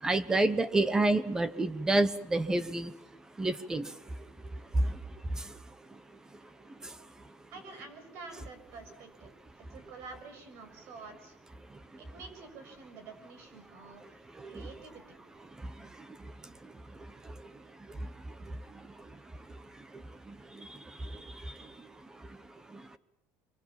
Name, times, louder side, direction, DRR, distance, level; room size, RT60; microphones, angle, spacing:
voice 1, 0.0-2.9 3.4-3.9 4.7-5.0 5.3-5.6 6.8-6.9 14.3-14.7 15.6-16.3 16.6-16.7 17.2-17.3 17.9-18.1 18.4-19.1 19.9-21.9 22.2-22.3 22.7-23.0, right 2 dB, 10° right, 15 dB, 1.1 m, -31 dB
voice 2, 7.5-9.3 9.6-11.4 12.0-14.1 14.4-15.2, right 4 dB, 60° right, 9 dB, 6.5 m, -48 dB
24.5 x 24.5 x 7.3 m, 0.76 s
cardioid pair, 150°, 5 cm